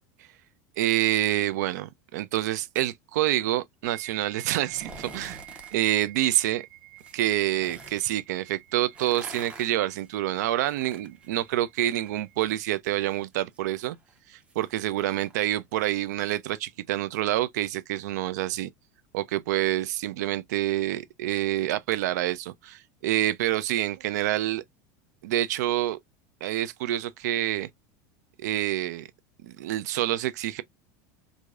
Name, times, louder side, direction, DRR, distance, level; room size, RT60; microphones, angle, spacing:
voice 1, 0.8-5.4 5.7-6.6 7.1-14.0 14.3-18.7 19.1-24.6 25.2-26.0 26.4-27.7 28.4-29.1 29.4-30.6, right 14 dB, 85° right, 0.4 m, -27 dB
sound 1, 3.8-12.5, right 18 dB, 60° right, 1.9 m, -49 dB
sound 2, 4.6-5.8 7.0-8.0 8.8-12.2 12.5-16.0 16.3-16.4, right 2 dB, 10° right, 0.7 m, -47 dB
4.7 x 2.7 x 2.4 m
supercardioid pair, 175°, 9 cm